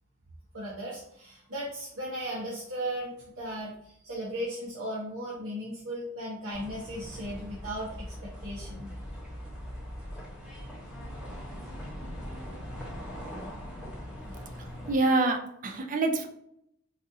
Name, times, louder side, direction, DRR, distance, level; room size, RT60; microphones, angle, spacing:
voice 1, 0.5-8.9, equal, 75° right, -7 dB, 0.9 m, -36 dB
sound 1, 6.5-15.0, equal, 5° right, 1.0 m, -41 dB
voice 2, 14.6-16.3, right 2 dB, 40° right, 5 dB, 0.4 m, -27 dB
4.0 x 2.5 x 2.6 m, 0.73 s
head